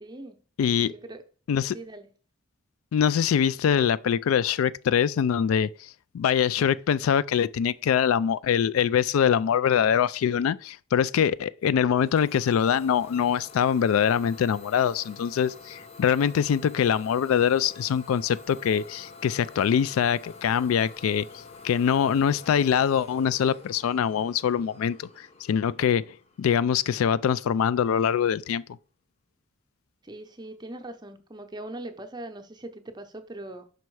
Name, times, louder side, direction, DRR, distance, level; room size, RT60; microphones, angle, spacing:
voice 1, 0.0-0.4 0.8-1.2 1.7-2.1 30.0-33.6, right 1 dB, 20° right, 0.6 m, -41 dB
voice 2, 0.6-0.9 1.5-1.7 2.9-5.7 6.1-21.3 21.6-26.0 26.4-28.6, left 8 dB, 90° left, 0.3 m, -23 dB
Idling / Domestic sounds home sounds, 12.0-27.5, left 4 dB, 30° left, 0.7 m, -48 dB
5.6 x 5.2 x 4.7 m
head